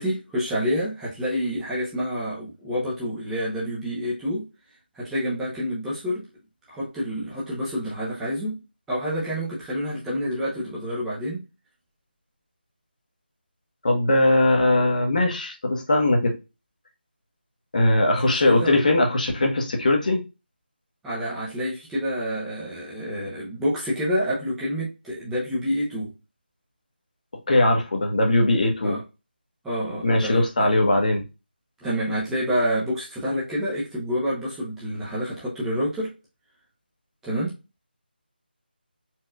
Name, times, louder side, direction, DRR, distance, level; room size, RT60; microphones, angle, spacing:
voice 1, 0.0-4.5 4.9-6.3 6.7-8.6 8.9-11.4 18.2-18.3 18.6-18.9 21.0-26.1 28.8-29.0 29.6-30.7 31.8-36.1 37.2-37.5, equal, 5° right, 0.8 m, -28 dB
voice 2, 13.8-16.3 17.7-20.2 27.5-29.0 30.0-31.2, left 1 dB, 50° left, 1.2 m, -20 dB
4.4 x 3.0 x 2.3 m
figure-of-eight pair, 160°, 6 cm